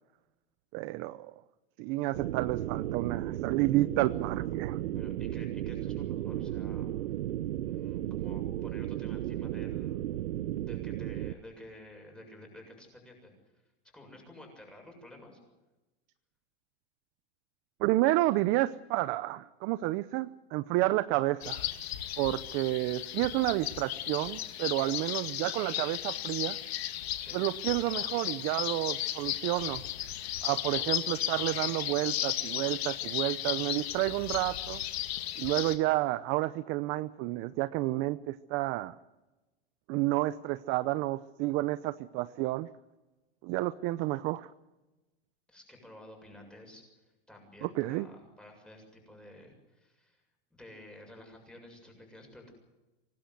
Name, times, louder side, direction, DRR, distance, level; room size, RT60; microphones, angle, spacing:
voice 1, 0.7-1.3 1.8-4.8 17.8-21.7 22.2-26.6 27.3-29.8 30.4-34.8 35.4-38.9 39.9-42.7 43.4-44.5 47.6-48.1, right 18 dB, 40° right, 14 dB, 0.8 m, -30 dB
sound 1, 2.1-11.3, right 13 dB, 85° right, 1.0 m, -34 dB
voice 2, 4.9-6.9 7.6-10.1 10.7-13.3 13.9-15.4 27.2-27.4 45.5-46.8 47.3-50.2 50.5-52.5, left 1 dB, 5° left, 2 dB, 7.3 m, -51 dB
sound 2, 21.4-35.8, left 12 dB, 80° left, 2.4 m, -35 dB
25.0 x 19.0 x 8.0 m, 1.1 s
supercardioid pair, 150°, 31 cm